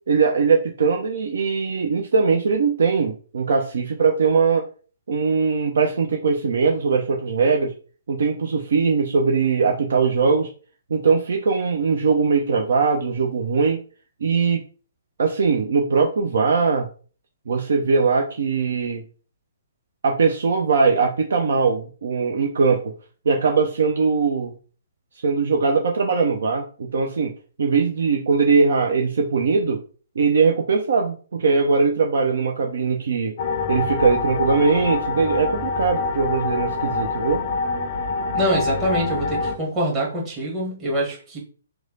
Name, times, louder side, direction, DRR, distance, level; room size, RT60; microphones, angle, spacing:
voice 1, 0.1-4.7 5.1-7.7 8.1-10.5 10.9-13.8 14.2-14.6 15.2-16.9 17.5-19.0 20.0-22.9 23.3-24.5 25.2-27.3 27.6-29.8 30.2-33.3 33.7-37.4, right 5 dB, 55° right, 1 dB, 0.5 m, -20 dB
sound 1, 33.4-39.6, left 3 dB, 40° left, 0.4 m, -25 dB
voice 2, 38.3-41.4, right 1 dB, 20° right, -3 dB, 1.4 m, -24 dB
3.1 x 2.3 x 3.8 m, 0.39 s
figure-of-eight pair, 125°, 0 cm